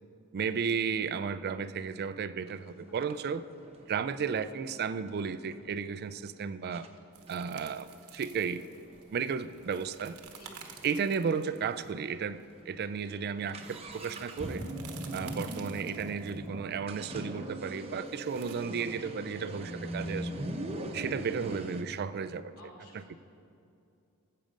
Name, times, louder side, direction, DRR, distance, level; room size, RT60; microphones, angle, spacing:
voice 1, 0.3-3.4 3.9-6.9 7.3-8.7 9.1-10.1 10.8-14.7 15.1-20.3 20.9-22.5 22.9-23.2, right 6 dB, 45° right, 14 dB, 0.4 m, -34 dB
sound 1, 2.5-2.6 3.0-5.7 6.3-6.4 6.7-6.9 7.3-10.9 11.2-11.3 11.5-11.6 12.2-12.4 12.7-21.8, right 1 dB, 25° right, 0.8 m, -41 dB
sound 2, 7.1-18.5, right 7 dB, 70° right, 1.0 m, -52 dB
voice 2, 10.2-10.6 18.8-19.1 19.5-19.6 21.5-21.7 22.6-23.2, left 1 dB, 75° left, -3 dB, 2.8 m, -54 dB
14.0 x 7.6 x 5.2 m, 2.6 s
head